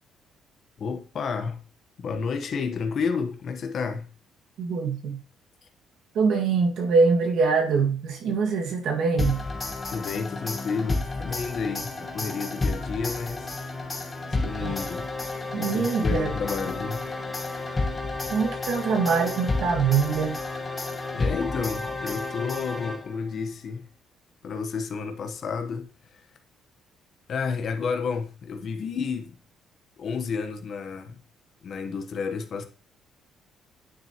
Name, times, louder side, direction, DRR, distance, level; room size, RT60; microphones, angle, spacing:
voice 1, 0.8-1.6 2.0-4.1 9.9-14.1 14.4-15.1 15.6-17.1 20.7-20.8 21.1-23.9 24.4-26.3 27.3-29.4 30.0-31.2 31.6-32.7, left 5 dB, 45° left, 1.0 m, -31 dB
voice 2, 4.6-5.2 6.1-9.4 14.6-14.7 15.5-16.3 18.3-20.4, right 5 dB, 65° right, 1.8 m, -24 dB
sound 1, 9.2-23.3, left 3 dB, 20° left, 1.4 m, -31 dB
9.7 x 6.2 x 2.9 m
cardioid pair, 140°, 0 cm